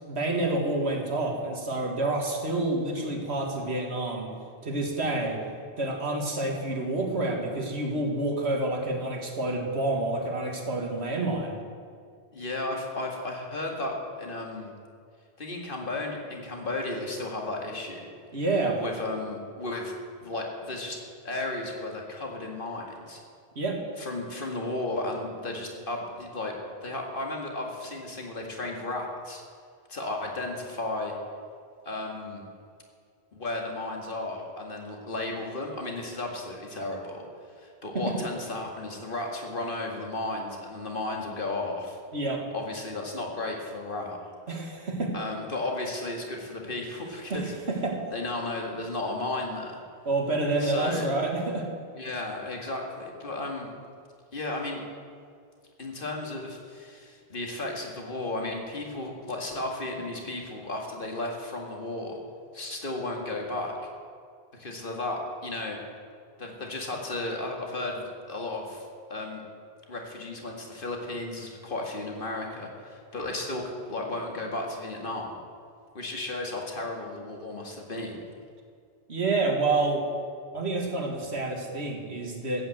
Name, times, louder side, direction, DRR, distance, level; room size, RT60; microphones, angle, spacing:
voice 1, 0.1-4.3 4.6-5.4 5.8-11.6 18.3-18.8 23.6-23.8 37.9-38.2 42.1-42.4 44.5-45.1 47.3-48.0 50.1-51.7 79.1-80.0 80.5-82.7, right 2 dB, 90° right, 2 dB, 2.2 m, -28 dB
voice 2, 12.3-14.7 15.4-18.1 18.7-19.9 20.2-21.0 21.2-23.2 24.0-26.5 26.8-29.4 29.9-31.1 31.9-32.4 33.3-37.2 37.6-42.0 42.5-44.2 45.1-47.5 48.1-49.8 50.6-51.0 51.9-53.7 54.3-54.8 55.8-62.2 62.5-63.9 64.6-65.8 66.4-68.8 69.1-69.4 69.9-75.3 75.9-78.2, left 2 dB, 55° left, 1 dB, 2.2 m, -34 dB
14.5 x 8.9 x 7.7 m, 2.3 s
omnidirectional pair, 1.1 m